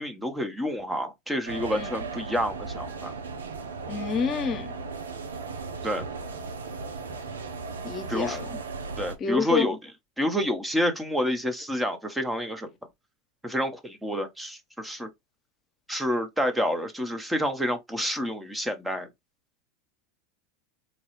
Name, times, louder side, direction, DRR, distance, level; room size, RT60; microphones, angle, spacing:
voice 1, 0.0-3.1 5.8-6.1 8.1-8.4 9.0-9.8 10.2-12.7 13.4-15.1 15.9-19.1, equal, 5° right, 0.8 m, -28 dB
sound 1, 1.5-9.2, right 4 dB, 85° right, 0.5 m, -36 dB
voice 2, 3.9-4.7 7.8-8.6 9.2-9.7, left 6 dB, 40° left, 0.8 m, -28 dB
4.1 x 2.3 x 3.0 m
hypercardioid pair, 85°, 0 cm